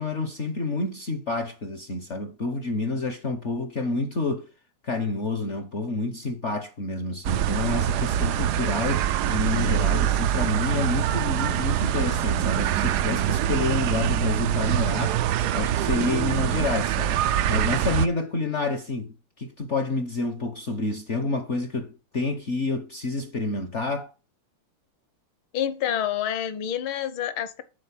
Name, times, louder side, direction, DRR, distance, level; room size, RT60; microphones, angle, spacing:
voice 1, 0.0-4.5 4.8-15.2 15.5-17.2 17.5-24.1, left 3 dB, 55° left, 0.8 m, -29 dB
sound 1, 7.2-18.1, right 11 dB, 85° right, 0.8 m, -24 dB
voice 2, 25.5-27.6, left 10 dB, 70° left, 1.7 m, -28 dB
10.5 x 4.2 x 7.3 m
omnidirectional pair, 2.4 m